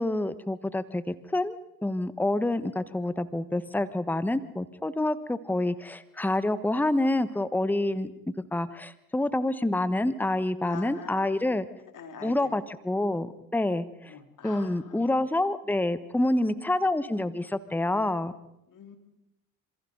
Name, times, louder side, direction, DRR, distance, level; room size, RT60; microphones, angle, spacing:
voice 1, 0.0-8.1 8.5-11.6 12.2-14.1 14.4-18.3, left 1 dB, 5° left, 14 dB, 1.2 m, -27 dB
voice 2, 10.6-11.5 11.9-12.5 14.1-15.1 18.7-19.0, left 6 dB, 45° left, 5 dB, 3.2 m, -44 dB
27.5 x 27.0 x 3.9 m, 0.83 s
hypercardioid pair, 55°, 44 cm